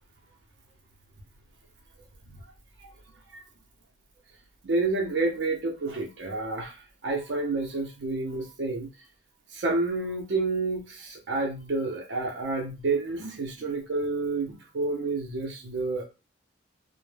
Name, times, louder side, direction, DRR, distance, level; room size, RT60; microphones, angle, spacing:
voice 1, 4.6-8.9 9.5-16.0, right 3 dB, 65° right, 0 dB, 0.5 m, -29 dB
2.1 x 2.0 x 3.1 m, 0.28 s
head